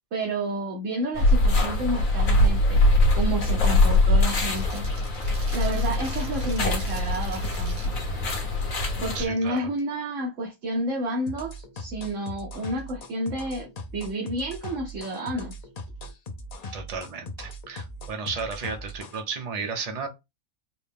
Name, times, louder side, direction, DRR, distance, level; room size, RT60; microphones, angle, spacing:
voice 1, 0.1-4.9 5.5-7.9 9.0-15.5, right 1 dB, 65° right, 1.2 m, -30 dB
sound 1, 1.2-9.2, left 2 dB, 75° left, 1.5 m, -22 dB
sound 2, 4.3-8.1 8.7-8.9 9.3-9.8 12.8-12.9 15.8-16.1, right 4 dB, 85° right, 1.6 m, -45 dB
voice 2, 9.1-9.6 16.7-20.1, right 5 dB, 35° right, 0.6 m, -33 dB
sound 3, 11.3-19.2, left 1 dB, 50° left, 0.4 m, -39 dB
4.3 x 2.2 x 3.4 m
omnidirectional pair, 1.5 m